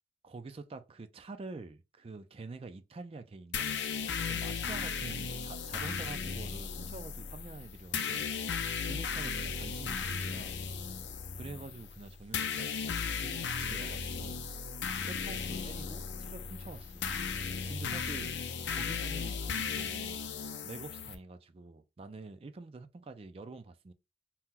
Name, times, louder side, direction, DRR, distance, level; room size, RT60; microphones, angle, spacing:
voice 1, 0.2-3.7 4.3-8.3 8.8-10.6 11.4-12.7 13.2-14.4 15.0-17.1 17.7-20.2 20.6-23.9, right 3 dB, 30° right, 0.3 m, -47 dB
sound 1, 3.5-21.1, left 6 dB, 70° left, 0.5 m, -36 dB
2.9 x 2.2 x 3.6 m
head